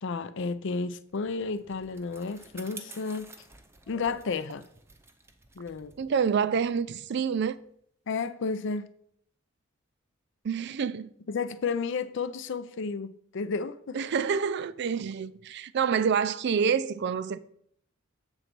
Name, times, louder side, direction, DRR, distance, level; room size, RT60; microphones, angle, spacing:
voice 1, 0.0-3.3 3.9-4.7 5.6-5.9 8.1-8.9 11.3-14.0, left 4 dB, 65° left, 0.5 m, -32 dB
Bicycle, 1.0-7.7, right 3 dB, 15° right, 0.6 m, -51 dB
voice 2, 6.0-7.5 10.4-11.1 13.9-17.4, right 6 dB, 55° right, 0.4 m, -27 dB
7.9 x 4.0 x 6.0 m
head